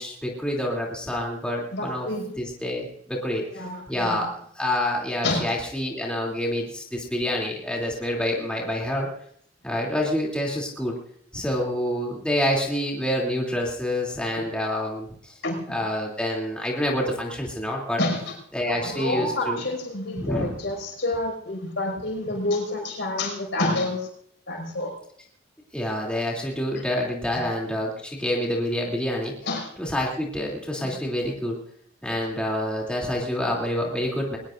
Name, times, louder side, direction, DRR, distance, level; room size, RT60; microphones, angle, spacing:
voice 1, 0.0-2.1 2.4-3.4 3.9-9.1 9.6-10.9 11.3-15.3 15.7-18.0 18.5-19.6 20.2-20.6 25.7-29.3 29.8-31.6 32.0-34.4, left 1 dB, 5° left, -3 dB, 3.0 m, -27 dB
voice 2, 1.7-2.3 3.5-4.2 5.2-5.5 14.4-14.5 15.4-15.8 18.0-18.3 18.6-24.1 24.5-25.0 27.3-27.4 29.4-29.7 30.8-30.9 32.2-32.3, left 2 dB, 70° left, 2 dB, 5.9 m, -28 dB
22.5 x 19.5 x 2.6 m, 0.66 s
head